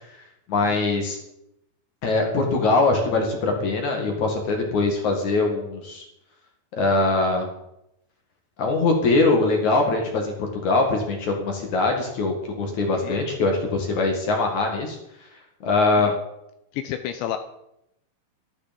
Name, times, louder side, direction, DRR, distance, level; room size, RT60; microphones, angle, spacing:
voice 1, 0.5-1.2 2.0-6.1 6.7-7.5 8.6-15.0 15.6-16.1, left 3 dB, 50° left, 2 dB, 2.7 m, -22 dB
voice 2, 12.9-13.2 16.0-16.2 16.7-17.4, left 11 dB, 80° left, 8 dB, 3.0 m, -31 dB
13.5 x 12.0 x 5.3 m, 0.81 s
omnidirectional pair, 5.5 m